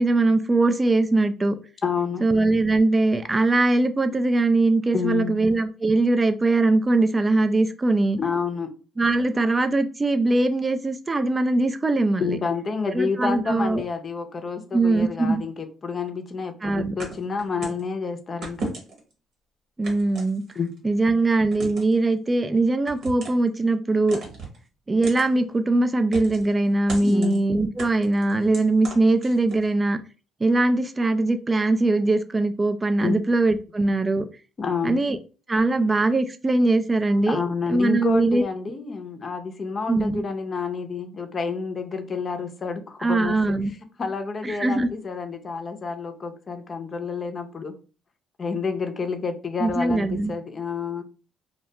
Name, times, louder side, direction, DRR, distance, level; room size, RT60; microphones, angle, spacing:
voice 1, 0.0-1.6 2.2-8.2 9.0-12.4 12.9-13.8 14.7-15.4 16.6-17.0 19.8-20.4 20.8-24.2 24.9-30.0 30.4-34.2 34.8-35.2 35.5-37.4 37.7-38.4 39.9-40.2 43.0-43.7 44.4-44.9 49.6-50.3, right 2 dB, 25° right, 0.3 m, -21 dB
voice 2, 1.8-2.2 4.9-5.3 8.2-8.7 12.2-18.7 20.6-20.7 27.0-27.3 33.0-33.2 34.6-35.0 37.3-43.6 44.0-47.7 48.4-51.0, left 5 dB, 40° left, 0.5 m, -29 dB
sound 1, 17.0-17.9 18.4-19.1 19.8-20.8 21.5-22.0 22.9-23.5 24.1-24.6 25.0-25.3 26.1-26.5 26.9-27.4 27.8-29.7, right 3 dB, 65° right, 1.0 m, -36 dB
2.3 x 2.2 x 2.8 m
supercardioid pair, 75°, 0 cm